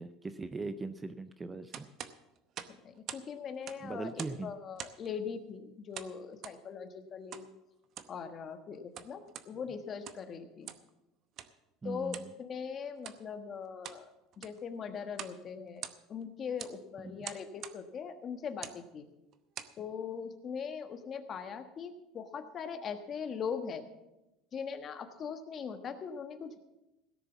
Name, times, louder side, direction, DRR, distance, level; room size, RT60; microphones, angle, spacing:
voice 1, 0.0-1.9 3.8-4.5 11.8-12.3 17.0-17.3, right 3 dB, 15° right, 11 dB, 0.5 m, -40 dB
sound 1, 1.7-3.3 3.5-4.4 4.8-5.1 5.9-6.6 7.3-7.5 7.8-8.2 8.7-9.5 9.9-10.3 10.6-10.9 11.4-11.5 12.1-12.3 13.0-13.2 13.6-14.0 14.3-14.6 15.1-15.4 15.7-16.2 16.6-16.8 17.2-17.8 18.5-18.8 19.3-19.8, right 10 dB, 45° right, 0.8 m, -45 dB
voice 2, 2.8-7.5 8.1-10.7 11.8-14.1 14.4-19.1 19.8-23.8 24.5-26.6, left 6 dB, 30° left, 8 dB, 1.3 m, -41 dB
17.0 x 6.9 x 7.1 m, 0.96 s
cardioid pair, 145°, 0 cm